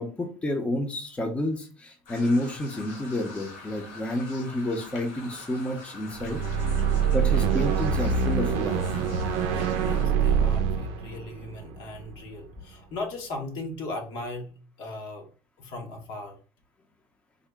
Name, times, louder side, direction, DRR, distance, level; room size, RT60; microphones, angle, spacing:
voice 1, 0.0-6.4 7.1-8.8, left 1 dB, 15° left, 3 dB, 0.6 m, -29 dB
sound 1, 2.1-10.0, left 3 dB, 90° left, 1.1 m, -45 dB
sound 2, 6.1-12.5, right 6 dB, 85° right, 0.4 m, -25 dB
voice 2, 9.5-14.5 14.8-15.3 15.6-16.4, left 2 dB, 65° left, 2 dB, 1.0 m, -37 dB
3.7 x 2.0 x 3.4 m, 0.38 s
cardioid pair, 120°, 9 cm